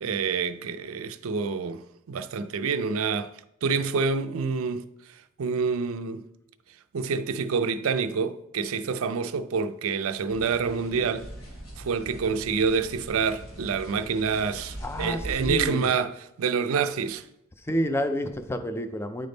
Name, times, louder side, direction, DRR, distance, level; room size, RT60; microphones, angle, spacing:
voice 1, 0.0-1.8 2.1-3.3 3.6-4.8 5.4-6.2 6.9-11.3 11.8-17.2, right 5 dB, 70° right, 0.4 m, -27 dB
sound 1, 10.3-15.7, right 1 dB, 80° left, 1.8 m, -41 dB
voice 2, 14.8-15.9 17.6-19.3, equal, 10° left, 0.3 m, -29 dB
9.3 x 3.5 x 3.9 m
head